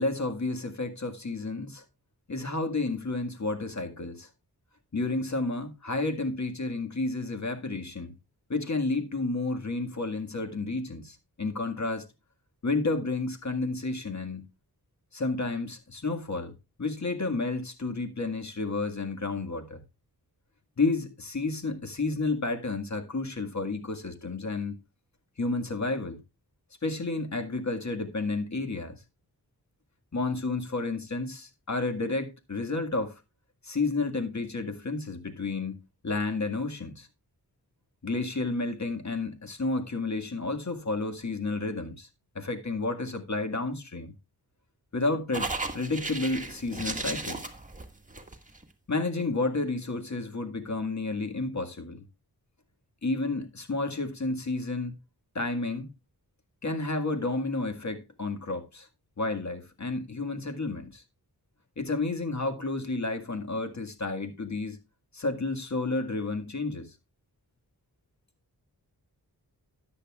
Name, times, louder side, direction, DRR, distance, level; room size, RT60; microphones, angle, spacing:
voice 1, 0.0-1.8 2.3-4.3 4.9-8.1 8.5-12.1 12.6-14.5 15.1-16.5 16.8-19.8 20.8-24.8 25.4-26.2 26.8-29.0 30.1-33.1 33.6-37.1 38.0-42.1 42.4-44.1 44.9-47.5 48.9-52.0 53.0-54.9 55.4-55.9 56.6-58.9 59.2-61.0 61.8-64.8 65.1-66.9, left 3 dB, 45° left, 1.8 m, -31 dB
sound 1, 45.3-48.6, right 2 dB, 20° right, 1.7 m, -35 dB
13.5 x 9.8 x 2.4 m
wide cardioid pair, 60°, 40 cm